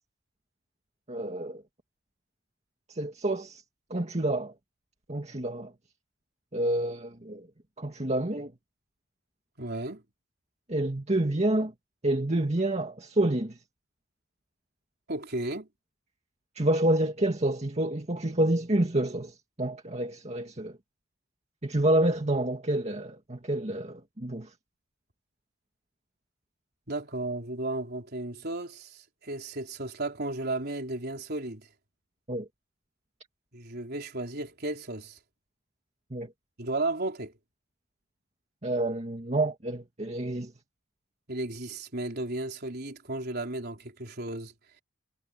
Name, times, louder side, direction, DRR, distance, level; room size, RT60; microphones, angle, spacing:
voice 1, 1.1-1.6 2.9-3.6 3.9-4.5 5.1-5.7 6.5-7.5 7.8-8.5 10.7-11.7 12.0-13.6 16.6-20.8 21.6-24.5 32.3-32.5 36.1-36.3 38.6-40.5, right 1 dB, 35° right, 2.0 m, -28 dB
voice 2, 9.6-10.0 15.1-15.7 26.9-31.7 33.5-35.2 36.6-37.3 41.3-44.5, right 2 dB, 55° right, 4.1 m, -34 dB
head